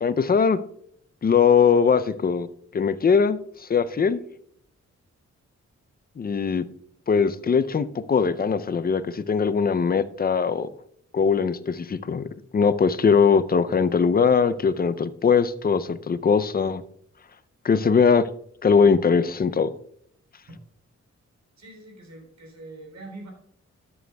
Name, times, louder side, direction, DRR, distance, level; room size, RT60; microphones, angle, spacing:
voice 1, 0.0-0.6 1.2-2.5 2.7-3.4 3.7-4.2 6.2-6.7 7.1-10.7 11.1-16.8 17.6-18.3 18.6-19.7, left 6 dB, 30° left, 0.5 m, -21 dB
voice 2, 21.6-23.3, right 2 dB, 65° right, 3.1 m, -43 dB
13.0 x 7.7 x 2.2 m
cardioid pair, 90°, 29 cm